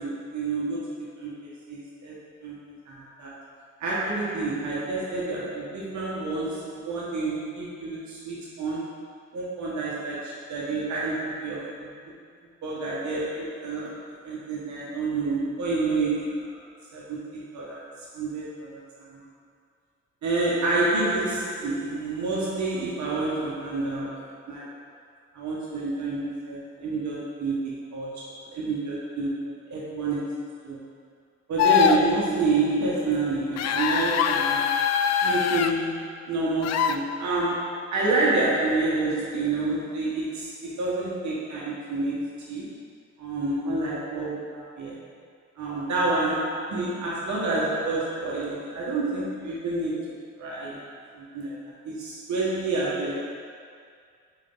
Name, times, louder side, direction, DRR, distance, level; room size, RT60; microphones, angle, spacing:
voice 1, 0.0-2.6 2.8-3.5 3.8-9.1 9.3-11.9 12.6-16.6 16.9-19.2 20.2-24.8 25.3-30.8 31.5-34.7 35.2-42.8 43.2-45.1 45.6-50.9 51.1-53.2, right 2 dB, 70° right, -6 dB, 1.5 m, -29 dB
sound 1, 31.6-32.0 33.6-35.7 36.6-37.0, left 7 dB, 60° left, 0.4 m, -22 dB
6.6 x 4.6 x 3.9 m, 2.2 s
cardioid pair, 90°, 30 cm